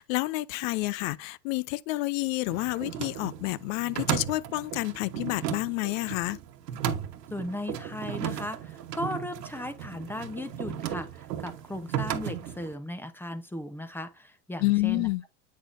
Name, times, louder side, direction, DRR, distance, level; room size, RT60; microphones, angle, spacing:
voice 1, 0.0-6.4 14.6-15.2, left 20 dB, 55° left, 0.5 m, -29 dB
sound 1, 2.5-12.7, right 10 dB, 80° right, 1.2 m, -35 dB
voice 2, 7.3-15.1, left 1 dB, 5° left, 0.8 m, -37 dB
8.3 x 6.0 x 2.6 m
hypercardioid pair, 100°, 48 cm